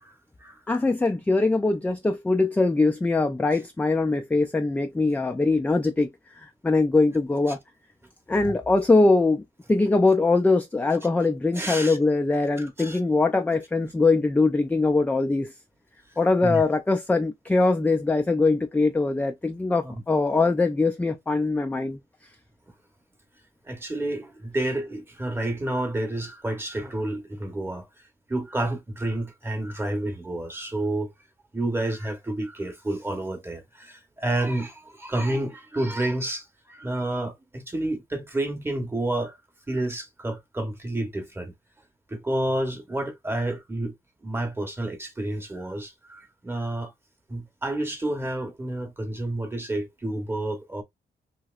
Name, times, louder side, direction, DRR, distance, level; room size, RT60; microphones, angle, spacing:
voice 1, 0.7-6.1 6.4-7.6 8.3-9.4 9.7-15.5 16.2-22.0, left 3 dB, 10° left, 0.3 m, -22 dB
voice 2, 11.5-12.0 12.6-13.0 16.4-16.6 19.8-19.9 23.7-27.8 28.3-31.1 31.5-36.4 36.7-39.4 39.7-41.5 42.1-43.9 44.2-46.9 47.3-50.8, right 1 dB, 15° right, 0.9 m, -29 dB
2.9 x 2.8 x 2.3 m
wide cardioid pair, 135°, 17 cm